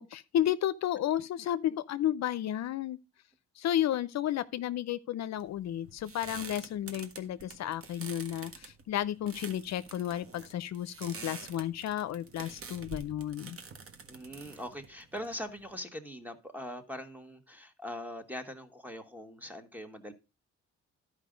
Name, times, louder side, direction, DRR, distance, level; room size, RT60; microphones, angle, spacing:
voice 1, 0.0-3.0 3.6-13.6, left 11 dB, 65° left, 0.5 m, -32 dB
sound 1, 5.4-15.7, right 4 dB, 50° right, 1.4 m, -47 dB
voice 2, 14.1-20.1, equal, 5° right, 1.5 m, -42 dB
11.5 x 5.0 x 5.1 m
cardioid pair, 90°, 30 cm